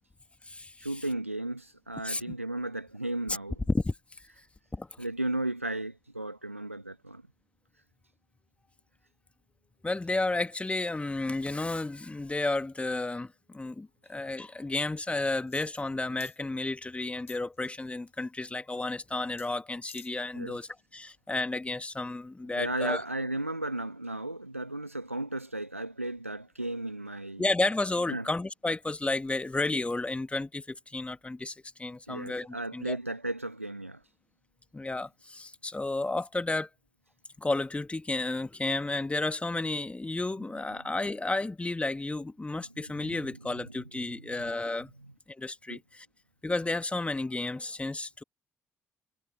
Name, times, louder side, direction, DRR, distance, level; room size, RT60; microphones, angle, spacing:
voice 1, 0.8-3.6 5.0-7.2 20.3-20.6 22.5-27.5 28.1-28.3 32.1-34.0 43.0-43.7 44.1-44.3 45.0-45.1 45.7-45.8, right 1 dB, 90° right, 1.7 m, -35 dB
voice 2, 2.0-2.3 3.3-3.4 3.7-3.9 4.7-4.9 9.8-23.0 27.4-33.0 34.7-36.7 37.4-44.9 45.4-46.1 46.4-48.2, left 2 dB, 15° left, 2.1 m, -32 dB
sound 1, 15.5-15.9 16.2-16.4 17.3-17.9 19.4-19.5 19.8-20.1 20.5-20.6, left 7 dB, 85° left, 2.5 m, -50 dB
figure-of-eight pair, 45°, 7 cm